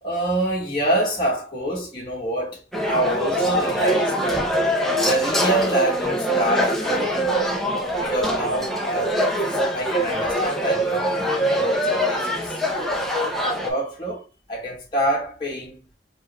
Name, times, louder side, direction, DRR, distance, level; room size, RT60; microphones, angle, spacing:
voice 1, 0.0-4.5 5.0-7.5 8.0-9.4 9.7-12.6 13.5-14.2 14.5-15.8, right 1 dB, 25° left, 1.2 m, -26 dB
sound 1, 2.7-13.7, equal, ahead, 0.7 m, -23 dB
4.6 x 2.5 x 3.0 m
head